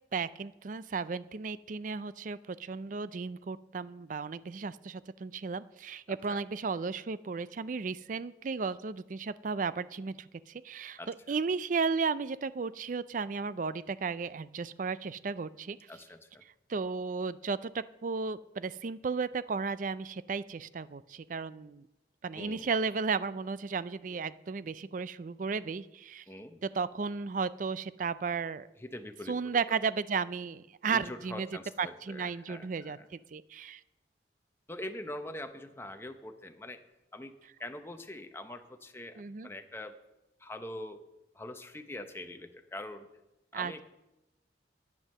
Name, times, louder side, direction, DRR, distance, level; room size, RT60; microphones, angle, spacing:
voice 1, 0.1-11.0 11.3-15.8 16.7-21.9 22.2-26.2 26.6-28.7 29.3-31.5 31.8-33.8 39.2-39.5 43.5-43.8, right 5 dB, 45° right, 16 dB, 0.4 m, -34 dB
voice 2, 15.9-16.4 22.3-22.7 26.3-26.6 28.8-29.6 30.9-33.1 34.7-36.8 37.1-37.3 37.6-40.0 40.4-41.0 41.3-43.1 43.5-43.8, left 1 dB, 15° left, 7 dB, 0.9 m, -43 dB
11.0 x 9.4 x 6.6 m, 0.93 s
head